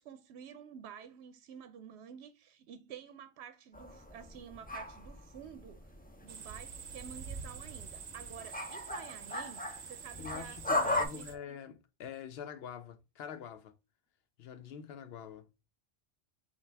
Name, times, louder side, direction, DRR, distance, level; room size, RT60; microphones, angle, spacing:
voice 1, 0.0-5.9 6.2-11.3, right 8 dB, 85° right, 0.9 m, -50 dB
sound 1, 3.7-6.4 6.7-11.1, left 2 dB, 10° left, 0.5 m, -37 dB
sound 2, 6.3-11.4, right 6 dB, 50° right, 0.6 m, -46 dB
voice 2, 10.2-13.7 14.4-15.5, left 8 dB, 75° left, 0.8 m, -45 dB
5.7 x 2.4 x 3.3 m
omnidirectional pair, 1.1 m